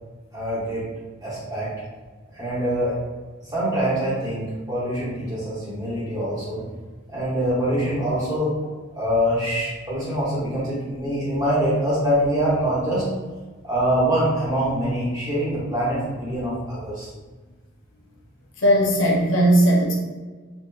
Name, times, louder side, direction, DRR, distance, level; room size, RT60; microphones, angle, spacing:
voice 1, 0.3-0.8 1.2-1.7 2.3-3.0 3.4-6.6 7.1-8.5 9.0-13.0 13.6-17.1, equal, 20° right, -11 dB, 1.4 m, -24 dB
voice 2, 18.6-19.9, right 1 dB, 65° left, -2 dB, 0.6 m, -17 dB
3.0 x 3.0 x 2.3 m, 1.3 s
head